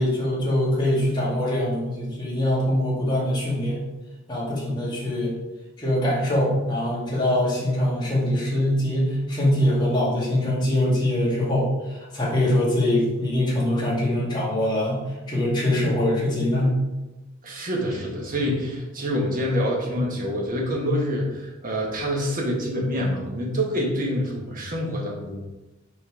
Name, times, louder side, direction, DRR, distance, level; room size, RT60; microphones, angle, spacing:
voice 1, 0.0-3.9 4.3-5.3 5.8-15.0 15.3-16.8, left 1 dB, 25° left, -7 dB, 2.3 m, -23 dB
voice 2, 17.4-25.5, equal, 45° right, -1 dB, 1.5 m, -26 dB
5.4 x 4.3 x 5.0 m, 1.1 s
head